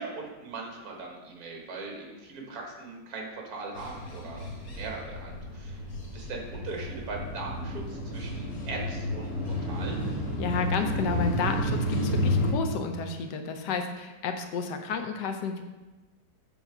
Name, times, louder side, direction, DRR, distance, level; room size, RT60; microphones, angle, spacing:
voice 1, 0.0-4.4 4.7-10.0, right 3 dB, 60° right, 0 dB, 1.6 m, -40 dB
sound 1, 3.7-12.5, equal, 55° left, 1.2 m, -31 dB
voice 2, 10.4-15.6, left 5 dB, 75° left, 6 dB, 1.2 m, -31 dB
7.1 x 3.7 x 4.7 m, 1.2 s
omnidirectional pair, 1.9 m